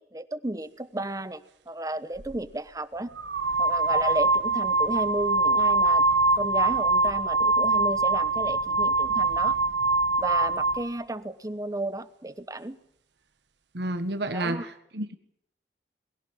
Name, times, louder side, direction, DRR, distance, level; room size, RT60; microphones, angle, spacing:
voice 1, 0.0-3.1 3.6-6.0 6.4-9.6 10.2-12.8 14.3-14.7, right 1 dB, 20° right, 13 dB, 0.9 m, -33 dB
sound 1, 2.2-2.4 3.2-10.9, right 3 dB, 90° right, 1.3 m, -23 dB
voice 2, 13.7-15.2, right 1 dB, 65° right, 8 dB, 1.5 m, -30 dB
22.0 x 16.0 x 9.2 m, 0.77 s
head